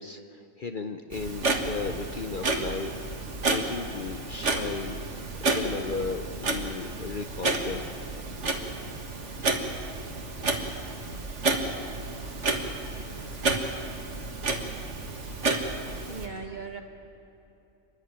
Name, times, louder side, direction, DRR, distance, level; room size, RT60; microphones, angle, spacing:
voice 1, 0.0-3.0 3.4-5.0 5.4-7.8, left 4 dB, 50° left, 7 dB, 0.8 m, -35 dB
Clock, 1.1-16.3, right 3 dB, 70° right, 1.9 m, -31 dB
voice 2, 16.0-16.8, right 4 dB, 40° right, 4 dB, 1.5 m, -38 dB
29.5 x 11.5 x 8.9 m, 3.0 s
omnidirectional pair, 1.3 m